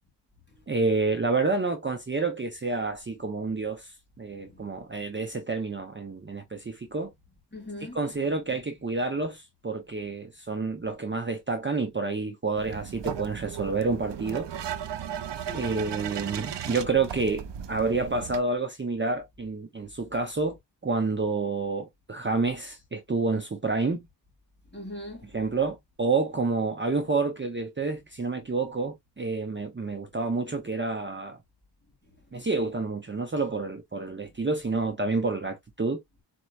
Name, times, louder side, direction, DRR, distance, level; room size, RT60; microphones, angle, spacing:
voice 1, 0.7-7.1 7.9-14.5 15.5-20.6 20.8-24.0 25.3-31.4 32.3-36.0, right 3 dB, 25° right, 0.7 m, -29 dB
voice 2, 7.5-8.0 15.3-15.8 16.5-16.6 24.7-25.4 32.4-32.5, left 1 dB, 25° left, 2.0 m, -42 dB
sound 1, 12.6-18.4, right 9 dB, 70° right, 0.6 m, -36 dB
4.4 x 2.9 x 2.4 m
wide cardioid pair, 105°, 45 cm